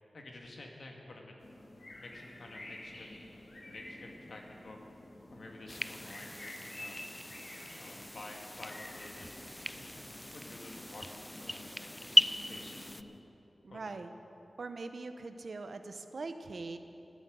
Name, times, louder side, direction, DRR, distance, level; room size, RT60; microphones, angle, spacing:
voice 1, 0.1-1.4 2.0-3.1 3.7-4.8 5.3-7.0 7.7-9.4 9.8-10.0 10.3-13.0 13.7-13.9, left 2 dB, 75° left, 1 dB, 1.9 m, -51 dB
sound 1, 1.4-13.2, left 1 dB, 55° left, 2.3 m, -50 dB
sound 2, 5.7-13.0, left 1 dB, 10° left, 0.4 m, -36 dB
voice 2, 13.6-14.1 14.6-16.8, right 3 dB, 70° right, 8 dB, 0.8 m, -42 dB
13.0 x 11.0 x 8.0 m, 3.0 s
wide cardioid pair, 60°, 0 cm